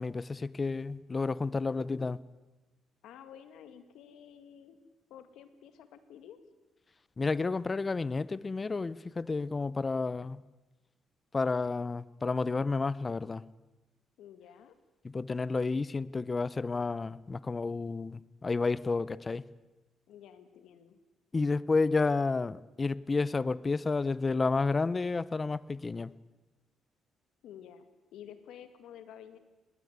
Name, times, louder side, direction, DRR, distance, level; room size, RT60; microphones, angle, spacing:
voice 1, 0.0-2.2 7.2-10.4 11.3-13.4 15.0-19.4 21.3-26.1, left 3 dB, 30° left, 19 dB, 0.7 m, -31 dB
voice 2, 3.0-4.8 5.1-6.4 14.2-14.8 20.1-21.0 27.4-27.9 28.1-29.4, left 9 dB, 85° left, 10 dB, 2.0 m, -51 dB
20.0 x 19.0 x 8.2 m, 1.1 s
cardioid pair, 90°, 0 cm